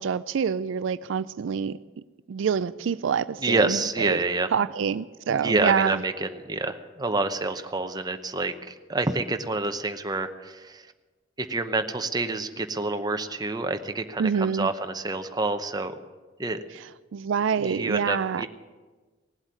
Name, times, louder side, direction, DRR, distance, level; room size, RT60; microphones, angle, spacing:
voice 1, 0.0-1.8 2.3-4.2 4.5-6.0 14.2-14.7 17.1-18.4, right 6 dB, 70° right, 0.4 m, -26 dB
voice 2, 3.4-4.5 5.3-10.9 11.4-15.9 16.4-16.6 17.6-18.5, right 3 dB, 20° right, 0.9 m, -28 dB
17.5 x 8.1 x 9.5 m
head